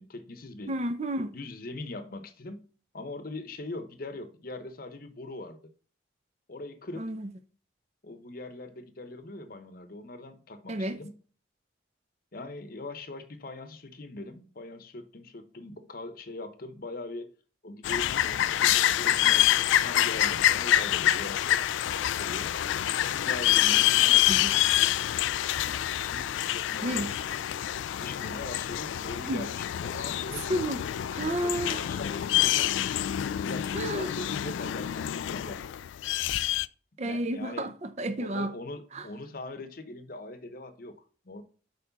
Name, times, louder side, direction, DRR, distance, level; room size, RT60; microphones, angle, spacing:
voice 1, 0.0-0.8 1.3-2.7 2.9-5.7 6.5-7.1 8.0-11.2 12.3-17.3 17.6-19.5 19.8-21.7 22.2-22.5 22.9-25.0 26.1-27.1 28.0-30.5 31.2-32.9 33.4-35.7 37.0-37.7 38.2-41.4, left 2 dB, 50° left, 0.9 m, -41 dB
voice 2, 0.7-1.4 7.0-7.3 10.7-11.0 24.3-24.5 26.8-27.2 29.3-29.5 30.5-30.8 31.1-31.8 33.7-34.1 37.0-38.5 38.9-39.1, right 1 dB, 35° right, 0.6 m, -31 dB
sound 1, 17.8-36.7, left 12 dB, 85° left, 0.3 m, -26 dB
7.0 x 4.7 x 4.0 m
head